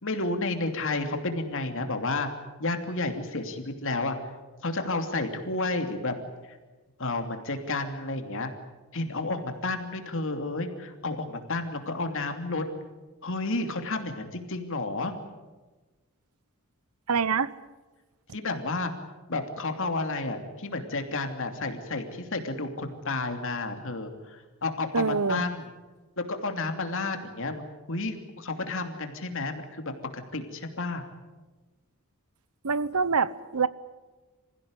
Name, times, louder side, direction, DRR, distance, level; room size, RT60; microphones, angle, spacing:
voice 1, 0.0-2.3 2.6-4.2 4.6-6.1 7.0-8.5 8.9-12.6 13.2-15.1 18.3-18.9 19.3-25.6 26.2-27.6 27.9-31.0, left 2 dB, 65° left, 6 dB, 2.9 m, -31 dB
voice 2, 17.1-17.5 24.9-25.5 32.6-33.7, right 5 dB, 90° right, 18 dB, 0.9 m, -25 dB
26.5 x 16.0 x 9.8 m, 1.2 s
head